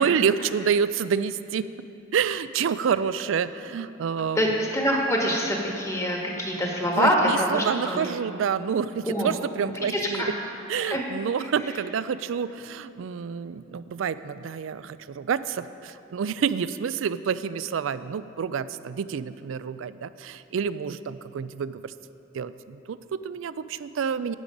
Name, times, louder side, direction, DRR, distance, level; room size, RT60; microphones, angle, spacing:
voice 1, 0.0-1.7 2.1-4.5 6.9-10.3 10.7-21.9 22.3-24.3, right 7 dB, 80° right, 14 dB, 0.4 m, -28 dB
voice 2, 4.3-8.1 9.0-9.3 9.6-10.3 10.7-11.0, equal, 15° left, -1 dB, 1.4 m, -25 dB
11.0 x 8.4 x 5.2 m, 2.7 s
head